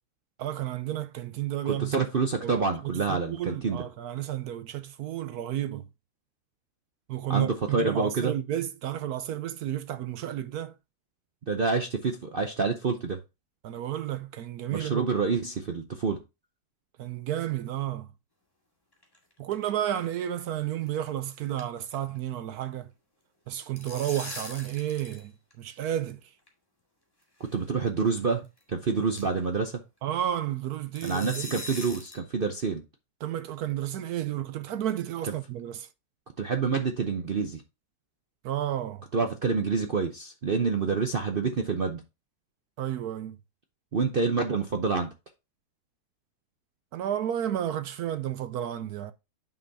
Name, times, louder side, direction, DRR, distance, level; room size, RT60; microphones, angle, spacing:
voice 1, 0.4-2.1 2.4-5.8 7.1-10.7 13.6-15.1 17.0-18.1 19.4-22.9 23.5-25.3 25.6-26.2 30.0-31.4 33.2-35.9 38.4-39.1 42.8-43.4 46.9-49.1, right 11 dB, 70° right, 1.0 m, -32 dB
voice 2, 1.6-3.8 7.3-8.3 11.5-13.2 14.7-16.2 27.5-29.8 31.0-32.8 35.3-35.4 36.4-37.6 39.1-42.0 43.9-45.1, right 4 dB, 55° right, 0.6 m, -27 dB
sound 1, 18.9-19.7 19.9-20.1 20.4-20.5 20.9-21.1 21.3-22.2 22.4-22.7 23.5-25.2 25.5-25.6 26.5-26.6 27.4-27.6 28.1-28.2 28.6-28.7 29.2-29.5 31.0-32.2, left 1 dB, 15° left, 1.9 m, -41 dB
9.3 x 5.6 x 2.7 m
omnidirectional pair, 1.9 m